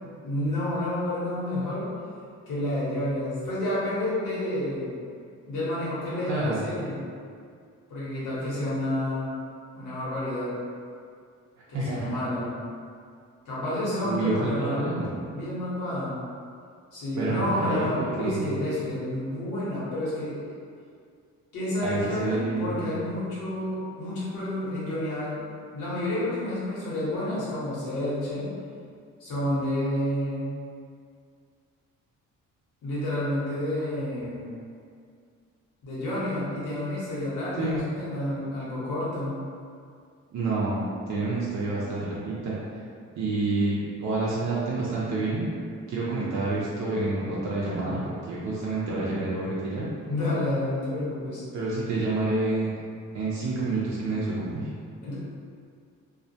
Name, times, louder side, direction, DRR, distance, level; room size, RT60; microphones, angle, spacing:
voice 1, 0.0-1.9 2.5-5.0 5.4-7.0 7.9-9.3 9.7-10.5 11.7-12.5 13.4-15.0 15.3-16.1 16.9-20.4 21.5-25.4 25.7-28.5 29.2-30.5 32.8-34.5 35.8-39.4 50.1-51.4 55.0-55.1, left 1 dB, 85° left, -9 dB, 1.0 m, -30 dB
voice 2, 6.3-6.6 11.7-12.2 14.0-15.1 17.2-18.6 21.8-22.9 33.8-33.9 34.3-34.4 37.6-37.8 40.3-42.6 43.2-45.5 45.9-49.8 51.5-52.7 53.1-54.7, right 2 dB, 65° right, -7 dB, 0.5 m, -28 dB
2.2 x 2.1 x 2.6 m, 2.2 s
cardioid pair, 90°, 30 cm